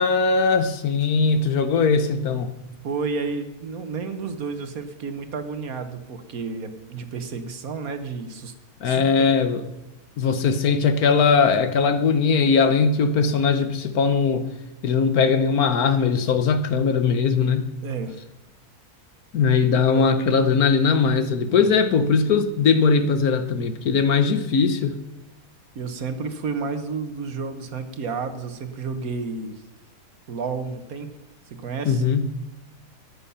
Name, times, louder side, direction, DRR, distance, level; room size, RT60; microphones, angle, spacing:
voice 1, 0.0-2.5 8.8-9.6 10.2-14.4 14.8-17.7 19.3-25.0 31.9-32.3, left 5 dB, 70° left, 1.5 m, -20 dB
voice 2, 2.8-8.5 8.8-9.3 17.8-18.2 19.9-20.1 25.7-29.6 30.3-31.1 31.5-32.0, right 4 dB, 65° right, 1.6 m, -31 dB
14.0 x 9.9 x 5.6 m
omnidirectional pair, 1.6 m